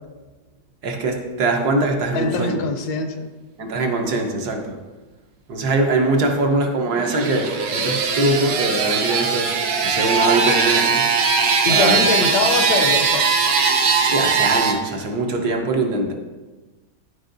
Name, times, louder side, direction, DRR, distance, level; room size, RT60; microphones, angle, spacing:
voice 1, 0.8-2.6 3.6-4.8 5.5-9.5 9.8-11.1 11.7-12.0 14.0-16.1, right 2 dB, 65° right, 2 dB, 1.4 m, -22 dB
voice 2, 2.1-3.3 6.3-6.6 11.6-13.2, left 4 dB, 70° left, 5 dB, 1.2 m, -23 dB
sound 1, 6.9-14.7, right 5 dB, 90° right, 1.5 m, -20 dB
12.0 x 4.5 x 2.6 m, 1.2 s
omnidirectional pair, 1.9 m